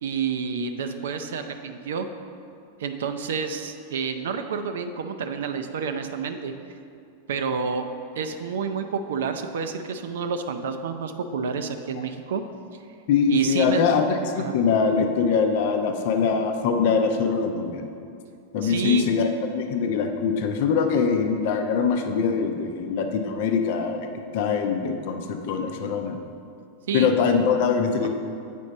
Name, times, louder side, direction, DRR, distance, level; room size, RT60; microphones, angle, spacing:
voice 1, 0.0-2.1 2.8-6.5 7.3-7.9 8.1-12.4 13.3-13.8 14.3-14.6 18.6-19.1 26.9-27.1, right 6 dB, 60° right, 7 dB, 0.5 m, -29 dB
voice 2, 13.1-17.9 18.5-26.2 26.9-28.1, left 5 dB, 50° left, 5 dB, 0.6 m, -23 dB
8.2 x 5.2 x 3.9 m, 2.4 s
figure-of-eight pair, 90°, 0 cm